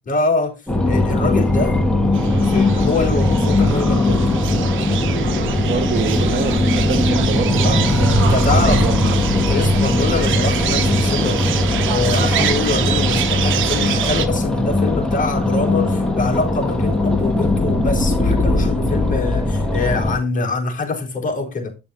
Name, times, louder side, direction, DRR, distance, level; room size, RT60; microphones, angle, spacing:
voice 1, 0.1-0.6 0.9-1.8 2.4-4.2 7.6-7.9 8.2-11.5 11.9-21.8, left 3 dB, 40° left, 4.1 m, -24 dB
sound 1, 0.7-20.2, left 2 dB, 5° left, 2.9 m, -19 dB
sound 2, 2.1-14.3, right 10 dB, 80° right, 1.1 m, -26 dB
voice 2, 5.6-9.0, right 6 dB, 60° right, 1.9 m, -26 dB
9.9 x 7.0 x 4.1 m
cardioid pair, 90°, 20 cm